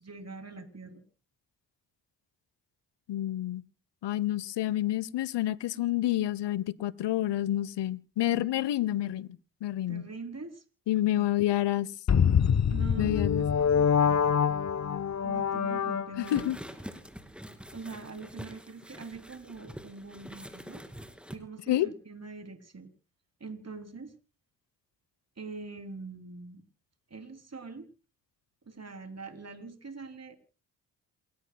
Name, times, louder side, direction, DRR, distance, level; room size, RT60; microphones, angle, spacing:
voice 1, 0.0-1.0 9.9-10.6 11.0-11.3 12.7-14.3 15.2-16.4 17.7-20.8 21.3-22.9 23.4-24.1 25.4-26.6 27.1-27.9 28.6-30.4, right 4 dB, 35° right, 3.3 m, -43 dB
voice 2, 3.1-3.6 4.0-9.3 9.6-10.1 10.9-11.9 13.0-13.4 16.2-16.6 21.7-21.9, left 14 dB, 60° left, 1.0 m, -28 dB
sound 1, 12.1-16.5, left 7 dB, 35° left, 0.9 m, -25 dB
sound 2, 16.2-21.4, equal, ahead, 2.8 m, -45 dB
28.0 x 14.0 x 2.3 m
hypercardioid pair, 40°, 47 cm